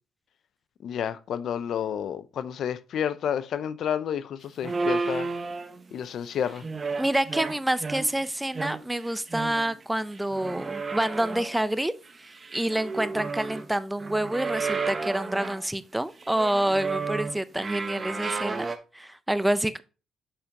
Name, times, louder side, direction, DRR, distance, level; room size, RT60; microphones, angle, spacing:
voice 1, 0.8-5.3 5.9-6.7, left 8 dB, 70° left, 0.5 m, -30 dB
sound 1, 4.6-6.0 6.5-8.2 8.5-9.8 10.1-11.6 12.1-13.7 14.0-15.7 16.2-18.8, right 4 dB, 35° right, 0.9 m, -32 dB
voice 2, 7.0-11.9 12.5-18.7 18.9-19.8, right 1 dB, 10° right, 0.5 m, -27 dB
7.0 x 5.1 x 2.8 m
cardioid pair, 90°, 0 cm